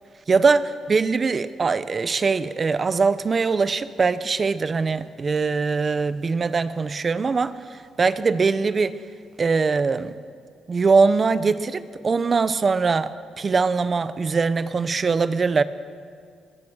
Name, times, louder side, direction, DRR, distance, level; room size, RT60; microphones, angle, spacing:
voice 1, 0.3-9.0 9.4-10.1 10.7-15.6, right 4 dB, 35° right, 14 dB, 1.0 m, -22 dB
23.5 x 22.0 x 6.4 m, 2.2 s
cardioid pair, 90°, 0 cm